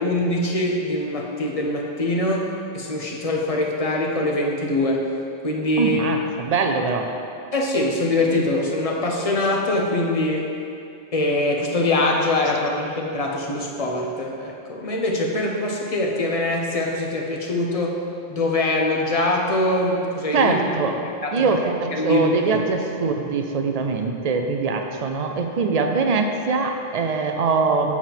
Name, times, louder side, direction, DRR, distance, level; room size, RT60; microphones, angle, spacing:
voice 1, 0.0-5.1 5.4-6.0 7.5-10.5 11.1-18.0 18.3-20.6 21.2-21.5 21.9-22.6, left 2 dB, 35° left, 0 dB, 0.7 m, -23 dB
voice 2, 5.8-7.1 20.3-21.0 21.3-28.0, right 4 dB, 55° right, 4 dB, 0.4 m, -22 dB
7.2 x 4.8 x 5.8 m, 2.6 s
omnidirectional pair, 1.3 m